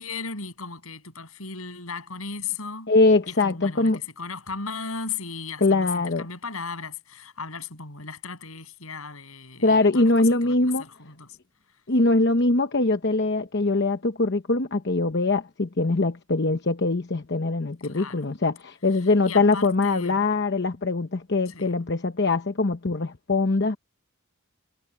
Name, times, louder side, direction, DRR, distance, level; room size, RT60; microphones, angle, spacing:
voice 1, 0.0-2.9 3.3-11.4 17.8-18.2 19.3-20.2 21.5-21.7, left 5 dB, 75° left, 7.3 m, -36 dB
voice 2, 2.9-4.0 5.6-6.2 9.6-10.9 11.9-23.8, left 3 dB, 50° left, 0.9 m, -22 dB
head